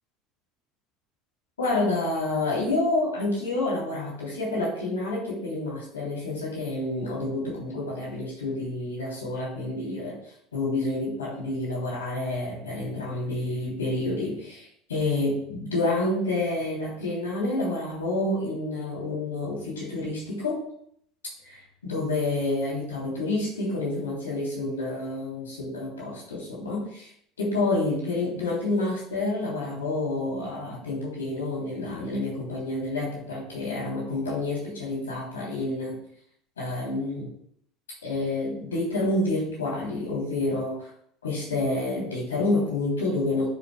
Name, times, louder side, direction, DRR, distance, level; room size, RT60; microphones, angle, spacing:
voice 1, 1.6-20.6 21.8-27.1 27.4-36.0 36.6-37.3 38.0-40.9 41.2-43.5, left 2 dB, 80° left, -4 dB, 3.1 m, -28 dB
14.5 x 7.3 x 2.3 m, 0.67 s
figure-of-eight pair, 70°, 0 cm